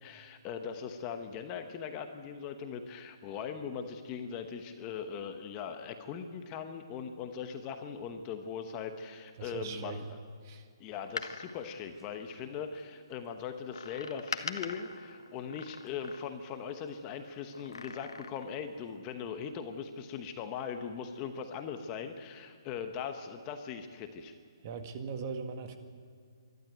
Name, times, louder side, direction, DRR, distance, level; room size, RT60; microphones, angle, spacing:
voice 1, 0.0-10.0 10.8-24.3, left 7 dB, 20° left, 6 dB, 1.1 m, -40 dB
voice 2, 9.4-10.1 10.4-10.7 24.6-25.8, right 5 dB, 35° right, 6 dB, 1.8 m, -39 dB
Door, 10.9-12.8 13.7-16.6 17.5-18.6 19.0-19.1, left 4 dB, 90° left, 1.4 m, -43 dB
24.0 x 12.5 x 9.3 m, 2.1 s
hypercardioid pair, 160°, 2 cm